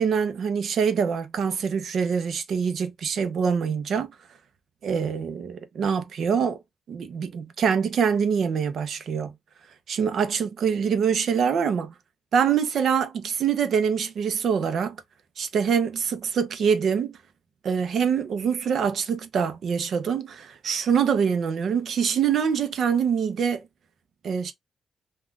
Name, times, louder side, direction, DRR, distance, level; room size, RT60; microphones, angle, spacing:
voice 1, 0.0-4.1 4.8-6.6 6.9-9.3 9.9-11.9 12.3-15.0 15.4-17.2 17.6-23.6 24.2-24.5, right 7 dB, 70° right, 0.7 m, -24 dB
3.6 x 2.4 x 2.3 m
cardioid pair, 80°, 0 cm